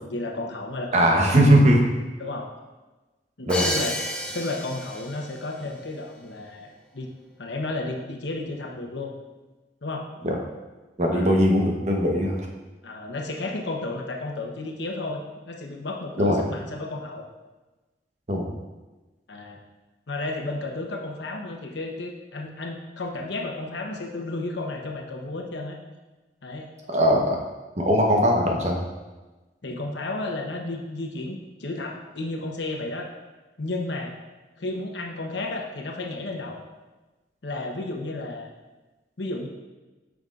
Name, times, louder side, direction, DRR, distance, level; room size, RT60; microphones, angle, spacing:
voice 1, 0.0-1.6 2.2-2.5 3.4-4.0 4.3-7.1 7.4-9.1 9.8-10.2 11.1-11.4 12.8-17.3 19.3-19.6 20.1-25.8 26.4-26.7 29.6-33.1 33.6-34.1 34.6-36.6 37.4-38.5 39.2-39.5, left 2 dB, 90° left, 2 dB, 0.9 m, -32 dB
voice 2, 0.9-1.8 3.5-3.7 10.2-10.4 11.0-12.4 16.2-16.4 18.3-18.5 26.9-27.4 27.8-28.8, equal, 40° right, 0 dB, 1.0 m, -19 dB
Crash cymbal, 3.5-5.4, equal, 5° left, 0.7 m, -30 dB
9.1 x 6.1 x 2.5 m, 1.2 s
head